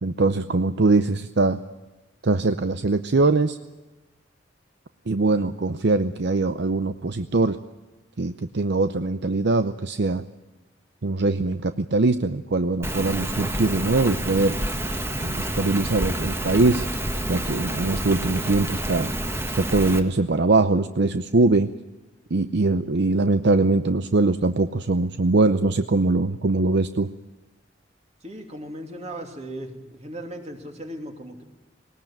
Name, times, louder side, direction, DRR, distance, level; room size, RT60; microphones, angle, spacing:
voice 1, 0.0-1.6 2.2-3.6 5.1-7.6 8.2-10.2 11.0-14.6 15.2-16.9 17.3-19.1 19.5-21.7 22.3-27.1, right 3 dB, 60° right, 10 dB, 0.7 m, -22 dB
Rain, 12.8-20.0, right 1 dB, 15° right, 1.6 m, -28 dB
voice 2, 28.2-31.4, right 1 dB, 35° right, 3 dB, 3.0 m, -37 dB
20.0 x 19.0 x 9.0 m, 1.1 s
head